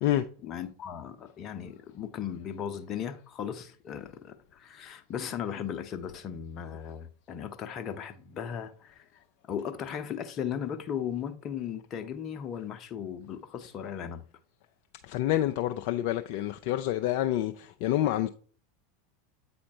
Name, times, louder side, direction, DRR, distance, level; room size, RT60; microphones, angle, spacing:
voice 1, 0.4-9.0 9.5-14.2, left 8 dB, 35° left, 0.7 m, -37 dB
voice 2, 15.0-18.3, left 13 dB, 55° left, 0.4 m, -28 dB
8.5 x 4.2 x 2.8 m
figure-of-eight pair, 85°, 0 cm